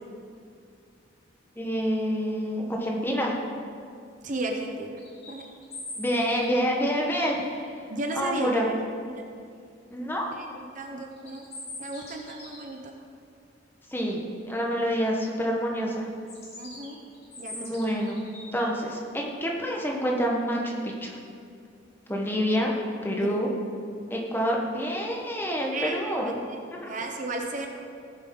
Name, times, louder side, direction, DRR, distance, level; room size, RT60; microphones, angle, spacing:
voice 1, 1.6-3.4 6.0-7.5 8.1-8.7 9.9-10.2 13.9-16.1 17.5-18.2 18.5-21.2 22.1-22.7 23.0-23.5 24.1-26.3 26.7-26.9, equal, 10° left, -1 dB, 1.1 m, -27 dB
voice 2, 4.2-5.0 5.3-5.5 7.9-8.8 9.1-9.2 10.4-11.4 11.8-12.8 16.6-17.0 17.4-17.7 23.2-23.4 25.7-26.0 26.2-26.3 26.8-27.7, right 2 dB, 40° right, 2 dB, 0.9 m, -33 dB
sound 1, 5.0-7.7 11.1-12.8 16.3-18.7, left 2 dB, 30° left, 2.4 m, -42 dB
16.5 x 7.2 x 3.8 m, 2.4 s
head